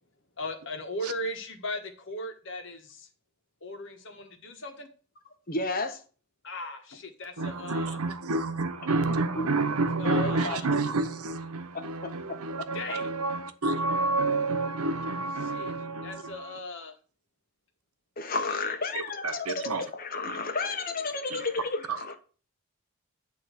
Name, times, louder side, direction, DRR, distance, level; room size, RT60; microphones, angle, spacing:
voice 1, 0.4-3.1 3.6-4.9 6.4-8.0 10.0-10.7 12.7-13.1 15.5-15.7 16.0-16.9, left 1 dB, 55° left, 1.3 m, -38 dB
voice 2, 5.5-6.0 9.1-9.5 10.0-10.8 11.7-12.7 18.2-22.2, left 3 dB, 40° left, 1.0 m, -32 dB
voice 3, 7.4-16.5 19.2-19.8 21.9-22.0, right 3 dB, 90° right, 0.9 m, -29 dB
9.1 x 3.0 x 6.3 m
head